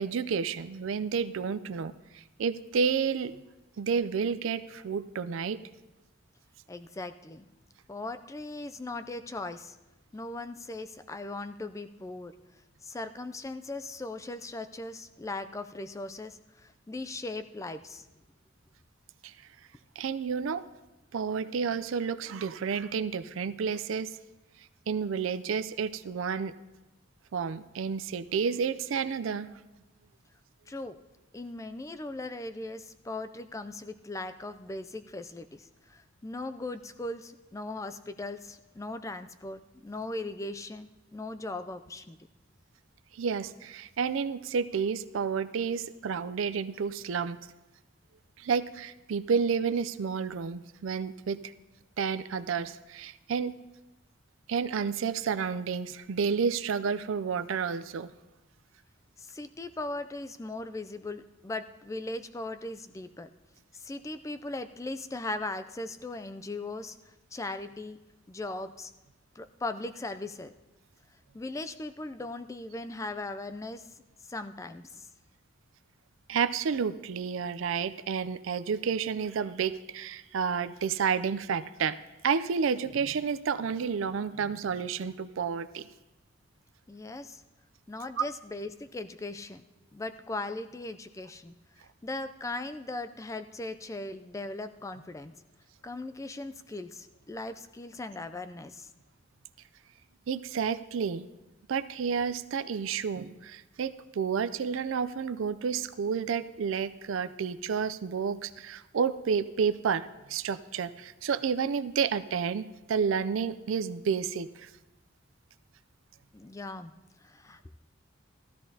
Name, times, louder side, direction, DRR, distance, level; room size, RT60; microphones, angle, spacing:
voice 1, 0.0-3.3 3.8-5.6 19.2-19.3 20.0-20.6 21.1-24.1 24.9-26.5 27.3-29.5 43.1-47.4 48.4-51.5 52.0-53.5 54.5-58.1 76.3-82.0 82.2-85.9 88.2-88.3 100.3-101.3 101.7-114.7, right 6 dB, 75° right, 14 dB, 0.4 m, -30 dB
voice 2, 6.7-7.5 7.9-9.8 10.1-12.3 12.8-18.1 30.7-31.0 31.3-42.2 59.2-63.3 63.7-67.0 67.3-68.0 68.3-68.9 69.4-70.5 71.3-74.0 74.3-75.1 86.9-87.4 87.9-89.6 89.9-91.5 92.0-95.3 95.8-98.9 116.3-116.9 117.2-117.8, left 2 dB, 15° left, 11 dB, 0.3 m, -39 dB
15.5 x 13.0 x 2.8 m, 1.0 s
head